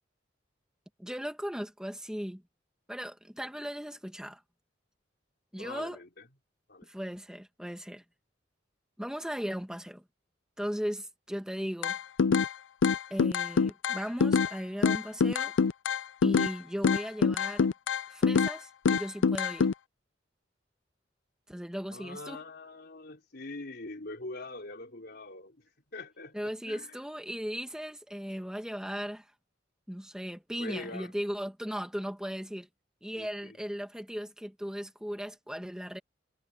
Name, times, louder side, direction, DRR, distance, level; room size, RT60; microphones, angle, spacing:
voice 1, 1.0-2.4 2.9-4.4 5.5-6.0 6.8-8.0 9.0-10.0 10.6-12.0 13.1-15.5 16.2-17.7 18.1-19.7 21.5-22.4 26.3-29.3 29.9-32.7 33.0-36.0, equal, 5° right, 1.6 m, -37 dB
voice 2, 5.6-6.3 6.7-6.9 21.9-27.0 30.6-31.1 33.2-33.6, left 2 dB, 60° left, 3.9 m, -43 dB
sound 1, 11.8-12.5 12.8-14.5 14.8-16.5 16.8-18.5 18.8-19.7, left 5 dB, 90° left, 0.4 m, -25 dB
head